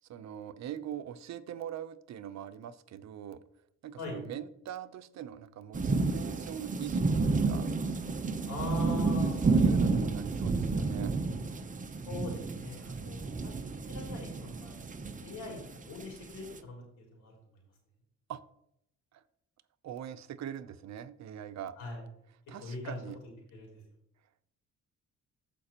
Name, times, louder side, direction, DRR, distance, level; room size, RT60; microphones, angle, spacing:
voice 1, 0.1-3.4 3.8-7.7 9.2-11.1 18.3-18.4 19.1-19.2 19.8-21.8 22.5-23.2, right 10 dB, 65° right, 12 dB, 0.7 m, -42 dB
sound 1, 5.7-16.6, right 3 dB, 25° right, 0.8 m, -30 dB
voice 2, 8.5-9.4 12.1-17.3 21.8-22.0 22.6-23.1 23.5-23.8, left 3 dB, 80° left, -1 dB, 3.8 m, -42 dB
15.0 x 5.2 x 2.9 m, 0.75 s
cardioid pair, 90°, 30 cm